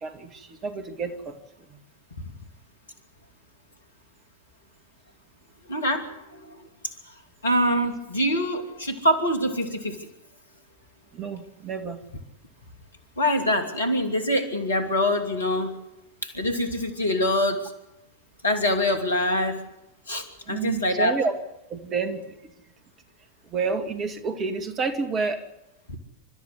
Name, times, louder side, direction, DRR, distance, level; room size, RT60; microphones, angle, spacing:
voice 1, 0.0-1.4 1.7-1.8 11.1-12.0 20.5-21.4 21.7-22.5 23.5-25.4, right 4 dB, 25° right, 9 dB, 2.2 m, -29 dB
voice 2, 5.7-6.6 7.4-10.1 13.2-15.8 16.2-17.7 18.4-19.6 20.1-21.2 25.9-26.0, left 1 dB, 75° left, 6 dB, 2.8 m, -25 dB
29.0 x 13.0 x 8.3 m, 0.89 s
figure-of-eight pair, 90°, 0 cm